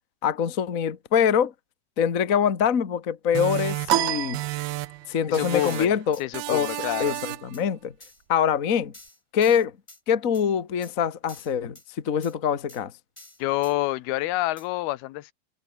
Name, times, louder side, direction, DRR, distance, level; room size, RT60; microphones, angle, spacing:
voice 1, 0.2-1.5 2.0-4.4 5.1-6.2 6.5-6.7 7.0-7.9 8.3-8.9 9.3-9.7 10.1-11.8 12.0-12.9, left 8 dB, 45° left, 1.1 m, -24 dB
sound 1, 3.4-5.1 5.3-6.0 6.3-7.6, right 19 dB, 85° right, 2.7 m, -32 dB
sound 2, 3.9-5.2, right 13 dB, 65° right, 2.1 m, -27 dB
voice 2, 5.3-5.9 6.2-7.2 13.4-15.3, left 17 dB, 85° left, 2.8 m, -27 dB
sound 3, 5.7-6.2 7.1-7.2 7.5-7.6 8.0-8.2 8.9-10.0 10.3-10.5 10.8-10.9 11.3-11.9 12.2-12.3 12.7-12.8 13.2-13.7 14.6-14.7, left 1 dB, 10° left, 2.2 m, -49 dB
omnidirectional pair, 4.3 m